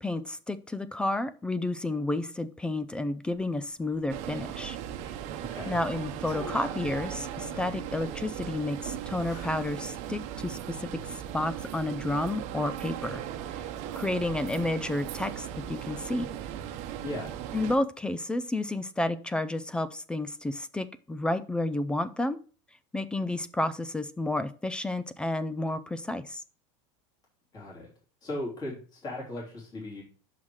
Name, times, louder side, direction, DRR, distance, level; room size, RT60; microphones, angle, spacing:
voice 1, 0.0-4.8 5.7-13.2 13.9-16.3 17.5-22.4 22.9-26.4, left 2 dB, 5° left, 14 dB, 0.3 m, -31 dB
sound 1, 3.3-12.2, left 1 dB, 80° left, 3.4 m, -50 dB
sound 2, 4.1-17.8, right 10 dB, 45° right, 0.9 m, -38 dB
voice 2, 27.5-27.9 28.2-30.0, left 1 dB, 25° left, -4 dB, 3.4 m, -37 dB
6.3 x 5.6 x 4.8 m, 0.39 s
supercardioid pair, 155°, 17 cm